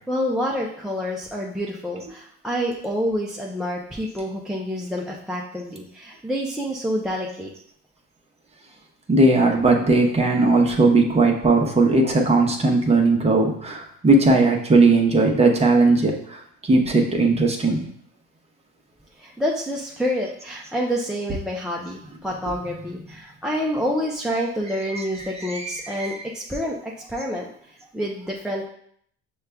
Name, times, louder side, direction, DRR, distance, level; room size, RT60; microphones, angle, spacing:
voice 1, 0.1-7.5 19.2-28.6, equal, ahead, -3 dB, 0.4 m, -28 dB
voice 2, 9.1-17.9 24.9-26.2, right 3 dB, 20° right, 1 dB, 0.8 m, -18 dB
6.4 x 2.3 x 3.4 m, 0.66 s
supercardioid pair, 110°, 32 cm